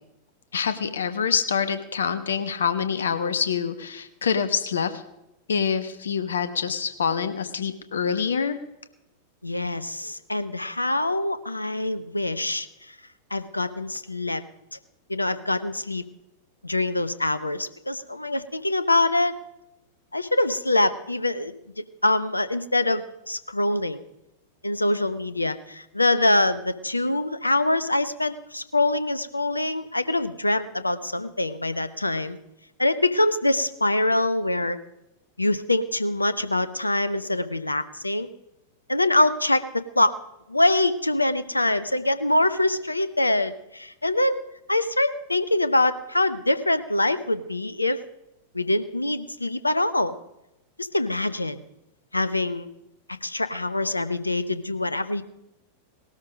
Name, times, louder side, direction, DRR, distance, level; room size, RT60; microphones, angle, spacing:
voice 1, 0.5-5.0 5.5-8.6, left 6 dB, 70° left, 11 dB, 1.2 m, -26 dB
voice 2, 9.4-12.7 13.3-14.4 15.1-16.0 16.6-19.4 20.1-24.0 24.6-32.4 32.8-34.8 35.4-38.3 38.9-40.1 40.5-44.4 44.7-48.0 48.5-50.1 50.8-51.6 52.1-52.7 53.1-55.2, left 2 dB, 85° left, 13 dB, 0.8 m, -24 dB
19.0 x 13.0 x 5.1 m, 0.90 s
figure-of-eight pair, 90°, 0 cm